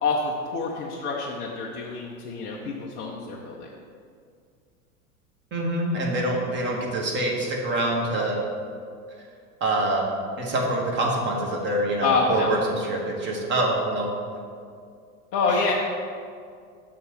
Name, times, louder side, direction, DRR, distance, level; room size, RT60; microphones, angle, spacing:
voice 1, 0.0-3.7 12.0-12.5 15.3-15.7, left 4 dB, 25° left, -3 dB, 0.5 m, -26 dB
voice 2, 5.5-8.4 9.6-10.0 10.4-14.1 15.5-15.7, right 1 dB, 25° right, -1 dB, 1.3 m, -25 dB
6.6 x 3.8 x 5.9 m, 2.3 s
figure-of-eight pair, 85°, 44 cm